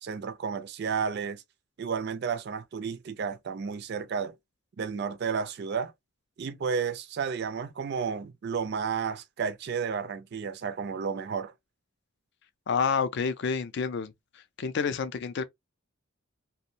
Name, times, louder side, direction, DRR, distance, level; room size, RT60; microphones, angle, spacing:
voice 1, 0.0-1.4 1.8-4.3 4.8-5.9 6.4-11.5, right 6 dB, 50° right, 0.3 m, -32 dB
voice 2, 12.7-14.1 14.6-15.4, left 6 dB, 50° left, 0.3 m, -28 dB
2.5 x 2.0 x 2.6 m
head